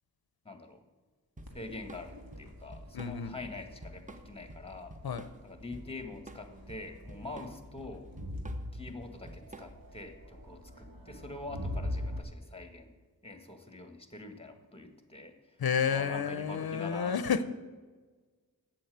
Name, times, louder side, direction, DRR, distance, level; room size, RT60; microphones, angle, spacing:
voice 1, 0.4-0.8 1.5-5.0 5.4-8.1 8.7-12.9 13.2-15.6 15.9-17.3, left 2 dB, 15° left, 7 dB, 1.6 m, -44 dB
Drum kit / Drum, 1.4-10.0, right 1 dB, 20° right, 0.9 m, -49 dB
Crowd, 1.5-12.2, left 1 dB, 70° right, 1.8 m, -43 dB
voice 2, 2.9-3.3 5.0-5.3 15.6-17.4, left 7 dB, 85° left, 12 dB, 0.6 m, -30 dB
8.5 x 7.8 x 7.9 m, 1.4 s
wide cardioid pair, 50°, 36 cm